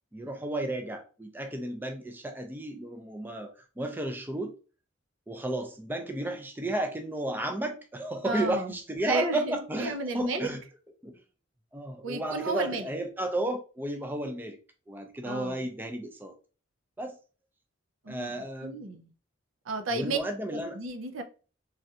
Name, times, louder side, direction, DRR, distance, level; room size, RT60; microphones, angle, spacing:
voice 1, 0.1-4.5 5.3-10.6 11.0-11.2 11.7-14.6 14.9-16.3 17.0-17.2 18.1-18.8 19.9-20.8, right 1 dB, 10° right, 5 dB, 0.4 m, -33 dB
voice 2, 8.2-8.7 9.0-10.5 12.0-12.9 15.2-15.6 18.0-18.3 18.6-19.1 19.7-20.2 20.5-21.2, right 3 dB, 80° right, 6 dB, 0.5 m, -33 dB
3.3 x 2.4 x 2.7 m, 0.35 s
head